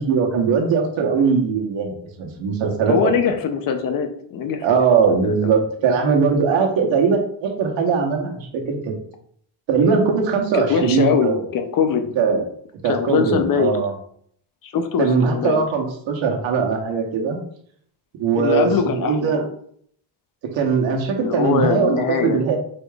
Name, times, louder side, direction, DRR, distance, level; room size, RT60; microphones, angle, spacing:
voice 1, 0.0-3.1 4.6-8.9 9.7-11.4 12.2-12.5 12.8-13.9 15.0-17.4 18.2-19.4 20.5-22.6, right 5 dB, 85° right, 2 dB, 1.2 m, -20 dB
voice 2, 2.9-4.8 5.2-5.5 10.5-12.1 12.8-13.7 14.6-15.6 18.3-19.3 21.2-22.4, left 6 dB, 50° left, 7 dB, 0.6 m, -22 dB
4.8 x 4.1 x 2.3 m, 0.63 s
cardioid pair, 145°, 44 cm